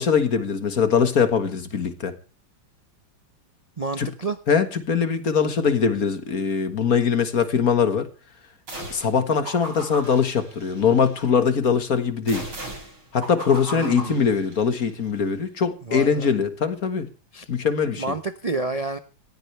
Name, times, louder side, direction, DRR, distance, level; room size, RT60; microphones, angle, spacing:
voice 1, 0.0-2.1 4.0-4.1 4.5-8.1 8.9-12.4 13.1-17.1 17.5-18.0, left 6 dB, 45° left, 2.0 m, -22 dB
voice 2, 3.8-4.4 13.7-14.2 15.8-16.3 17.3-17.5 18.0-19.0, right 3 dB, 50° right, 0.4 m, -29 dB
sound 1, 8.7-9.1 9.4-11.2 12.3-14.9, right 1 dB, 85° right, 8.2 m, -37 dB
19.0 x 15.5 x 3.4 m
omnidirectional pair, 2.2 m